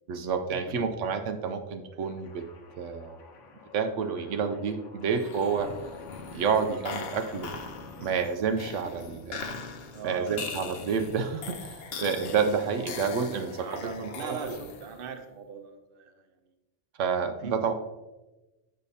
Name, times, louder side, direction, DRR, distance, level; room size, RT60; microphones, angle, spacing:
voice 1, 0.1-2.4 2.8-3.2 3.7-5.7 6.3-7.5 8.0-9.3 10.0-13.7 14.0-14.6 17.0-17.7, right 6 dB, 85° right, 7 dB, 1.0 m, -29 dB
sound 1, 2.0-8.8, left 5 dB, 80° left, 1.2 m, -50 dB
sound 2, 5.2-15.1, left 5 dB, 60° left, 0.9 m, -41 dB
voice 2, 9.9-10.5 13.6-16.3 17.4-17.7, right 6 dB, 55° right, 6 dB, 0.9 m, -39 dB
8.4 x 6.6 x 2.8 m, 1.1 s
omnidirectional pair, 1.2 m